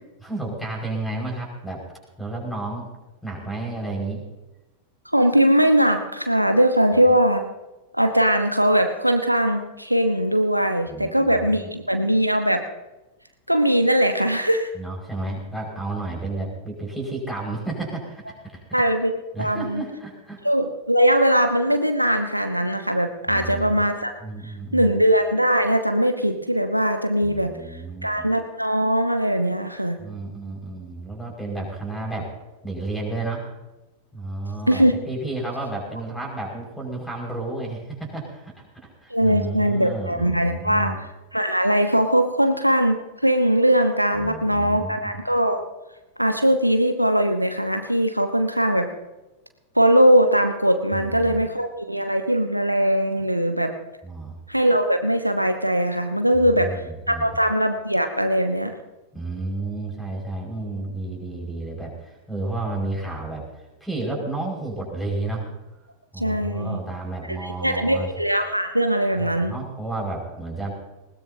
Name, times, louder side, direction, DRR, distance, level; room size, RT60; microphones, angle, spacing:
voice 1, 0.2-1.8 2.2-2.9 3.2-4.2 10.9-11.7 14.7-18.8 19.3-20.4 23.3-23.9 24.2-25.0 27.2-28.3 30.0-32.3 32.6-33.4 34.1-41.0 44.2-45.2 50.9-51.5 54.0-54.4 56.3-57.3 59.1-63.4 63.8-65.5 66.1-68.1 69.1-70.7, right 2 dB, 5° left, 0 dB, 5.5 m, -32 dB
voice 2, 5.1-7.4 7.9-12.6 13.5-14.7 18.7-19.8 20.4-24.1 24.4-27.5 28.0-30.0 34.7-34.9 39.1-40.9 41.3-45.6 46.2-48.9 49.7-53.7 54.5-58.7 66.2-66.8 67.3-69.5, equal, 90° right, 7 dB, 1.1 m, -20 dB
20.0 x 19.0 x 2.8 m, 1.0 s
figure-of-eight pair, 90°, 0 cm